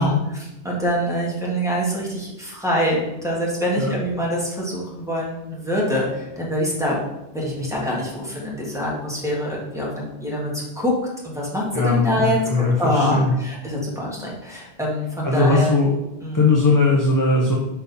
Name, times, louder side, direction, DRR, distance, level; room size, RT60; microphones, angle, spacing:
voice 1, 0.0-7.0 7.3-10.9 11.2-15.7 16.2-16.4, equal, 5° right, -6 dB, 1.8 m, -25 dB
voice 2, 11.7-13.3 15.2-15.9 16.3-17.6, left 3 dB, 20° left, -3 dB, 0.8 m, -19 dB
5.3 x 4.5 x 5.4 m, 0.95 s
omnidirectional pair, 1.1 m